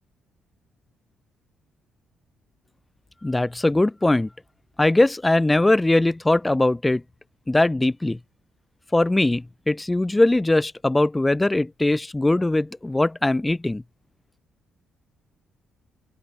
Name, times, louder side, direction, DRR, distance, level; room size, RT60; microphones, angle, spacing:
voice 1, 3.2-4.3 4.8-7.0 7.5-8.2 8.9-13.8, left 2 dB, 15° left, 2.7 m, -20 dB
open air
cardioid pair, 90°, 0 cm